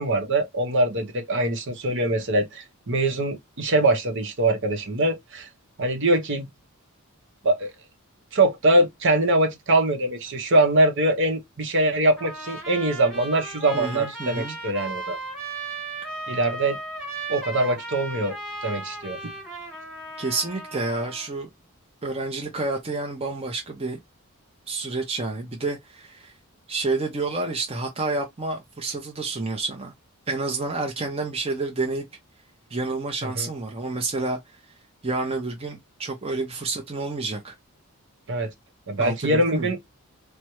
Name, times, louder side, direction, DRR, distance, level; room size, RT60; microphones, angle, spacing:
voice 1, 0.0-5.5 5.8-6.5 7.4-7.7 8.3-15.2 16.3-16.8 17.3-18.4 18.6-19.3 33.2-33.5 38.3-38.5 38.9-39.8, right 1 dB, 55° right, 0.8 m, -23 dB
Trumpet, 12.2-21.3, right 2 dB, ahead, 1.5 m, -36 dB
voice 2, 13.7-14.6 20.2-21.5 22.0-24.0 24.7-26.3 26.7-29.9 30.3-32.1 32.7-34.4 35.0-37.5 39.0-39.7, right 3 dB, 25° right, 0.7 m, -29 dB
3.4 x 2.1 x 3.0 m
head